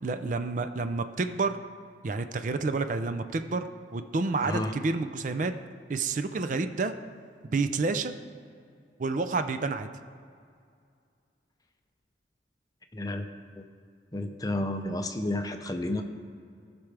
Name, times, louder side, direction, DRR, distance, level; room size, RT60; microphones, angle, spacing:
voice 1, 0.0-1.6 2.0-5.5 5.9-6.9 7.4-8.1 9.0-9.9, right 3 dB, 45° right, 9 dB, 0.4 m, -29 dB
voice 2, 4.4-4.7 12.9-13.2 13.6-13.7 14.1-16.0, left 1 dB, 20° left, 6 dB, 0.6 m, -31 dB
17.5 x 6.0 x 3.3 m, 2.3 s
head